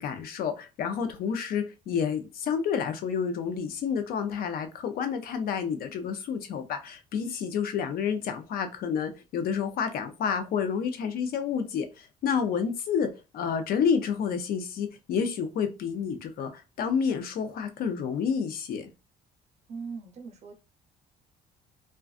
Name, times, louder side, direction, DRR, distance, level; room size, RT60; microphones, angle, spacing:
voice 1, 0.0-18.9, left 7 dB, 60° left, 0.5 m, -29 dB
voice 2, 19.7-20.5, right 5 dB, 40° right, 0.7 m, -40 dB
2.5 x 2.2 x 2.3 m
cardioid pair, 110°, 17 cm